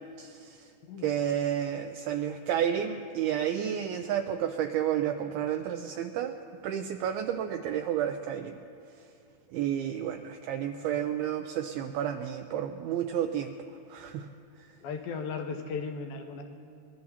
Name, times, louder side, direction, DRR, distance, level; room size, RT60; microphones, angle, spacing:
voice 1, 0.2-0.6 1.0-6.4 6.6-8.6 9.5-13.5 13.9-14.3, right 9 dB, 80° right, 5 dB, 2.3 m, -31 dB
voice 2, 14.8-16.4, left 5 dB, 75° left, 5 dB, 2.4 m, -36 dB
24.0 x 20.5 x 2.9 m, 2.6 s
omnidirectional pair, 4.7 m